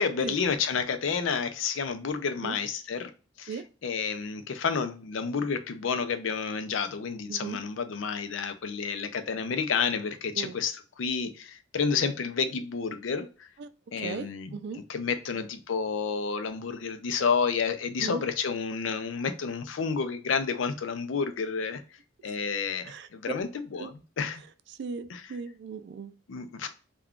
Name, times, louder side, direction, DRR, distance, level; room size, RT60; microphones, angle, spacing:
voice 1, 0.0-3.1 3.4-3.6 3.8-13.3 13.9-21.8 22.2-23.9 24.2-24.4 25.1-25.2 26.3-26.7, left 5 dB, 85° left, 9 dB, 0.5 m, -30 dB
voice 2, 14.0-14.8 18.0-18.2 22.8-23.3 23.8-23.9 24.7-26.1, right 5 dB, 60° right, 13 dB, 0.3 m, -37 dB
3.6 x 2.3 x 2.3 m, 0.35 s
head